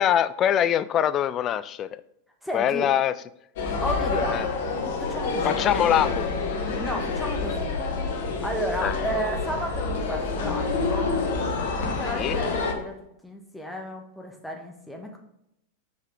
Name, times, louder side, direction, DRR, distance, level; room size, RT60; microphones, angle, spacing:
voice 1, 0.0-2.0 2.5-3.1 4.3-4.5 5.4-6.4 8.8-8.9 12.1-12.4, left 10 dB, 30° left, 16 dB, 0.3 m, -23 dB
voice 2, 2.4-2.9 3.8-4.4 5.0-5.6 6.8-7.8 8.4-11.2 12.0-15.2, equal, 5° left, 2 dB, 1.3 m, -33 dB
sound 1, 3.6-12.7, left 4 dB, 55° left, 1.2 m, -27 dB
6.1 x 5.1 x 3.4 m, 0.79 s
figure-of-eight pair, 90°, 0 cm